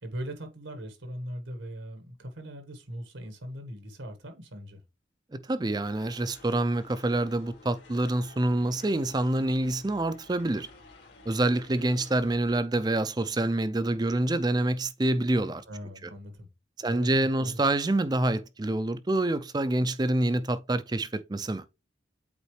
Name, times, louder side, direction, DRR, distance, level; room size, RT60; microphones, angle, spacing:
voice 1, 0.0-4.8 15.7-16.5 16.9-17.6, equal, 80° right, 1.5 m, -39 dB
voice 2, 5.5-10.7 11.3-15.6 16.8-21.6, right 1 dB, 20° right, 0.4 m, -27 dB
sound 1, 5.8-12.6, left 3 dB, 65° left, 1.9 m, -53 dB
8.3 x 4.0 x 3.2 m
head